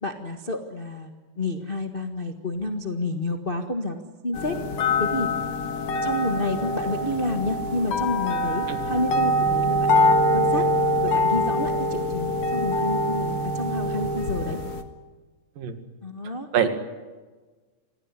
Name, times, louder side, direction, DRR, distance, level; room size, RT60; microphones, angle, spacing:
voice 1, 0.0-1.1 1.4-4.6 5.0-5.3 6.0-10.6 11.0-14.6 16.0-16.5, left 2 dB, 75° left, 5 dB, 0.5 m, -29 dB
sound 1, 4.3-14.8, left 1 dB, 55° left, 2.4 m, -24 dB
voice 2, 16.3-16.7, right 8 dB, 75° right, 8 dB, 3.7 m, -26 dB
26.0 x 17.5 x 9.7 m, 1.3 s
omnidirectional pair, 4.0 m